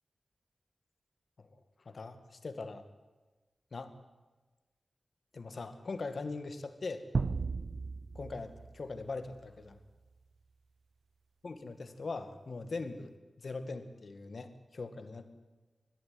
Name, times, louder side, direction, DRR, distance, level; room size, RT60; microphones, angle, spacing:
voice 1, 1.9-2.8 3.7-3.9 5.3-7.1 8.2-9.8 11.4-13.1 13.4-15.3, left 3 dB, 65° left, 9 dB, 2.1 m, -41 dB
sound 1, 7.1-9.7, right 4 dB, 70° right, 0.7 m, -36 dB
21.0 x 14.5 x 9.5 m, 1.2 s
wide cardioid pair, 105°, 0 cm